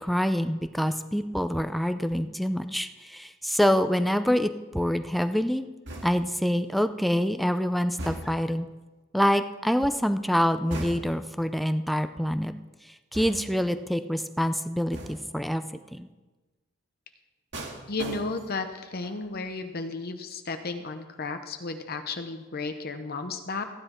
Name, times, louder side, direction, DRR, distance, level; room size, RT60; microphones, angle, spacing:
voice 1, 0.0-5.7 6.0-8.7 9.1-12.5 13.1-15.6 15.9-16.1, equal, ahead, 9 dB, 0.5 m, -26 dB
sound 1, 5.9-6.4 8.0-8.6 10.7-11.3 13.1-13.7 14.9-15.4 17.5-18.7 19.0-19.4, right 1 dB, 65° right, 1.9 m, -38 dB
voice 2, 17.9-23.6, left 3 dB, 50° left, 7 dB, 0.9 m, -33 dB
14.5 x 10.0 x 4.4 m, 1.2 s
head